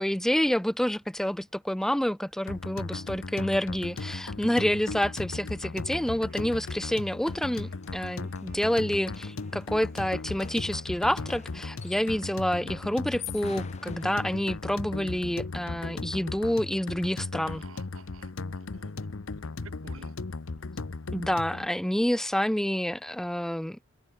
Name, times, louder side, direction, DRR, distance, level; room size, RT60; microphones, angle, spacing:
voice 1, 0.0-17.6 21.1-23.8, equal, ahead, 0.3 m, -28 dB
sound 1, 2.5-21.7, left 3 dB, 70° left, 0.8 m, -37 dB
Wind instrument woodwind instrument, 5.9-12.6, right 3 dB, 45° right, 5.1 m, -61 dB
sound 2, 6.7-12.3 13.0-14.8, left 8 dB, 35° left, 1.1 m, -48 dB
voice 2, 17.5-18.9 19.3-20.1, right 4 dB, 85° right, 1.5 m, -52 dB
head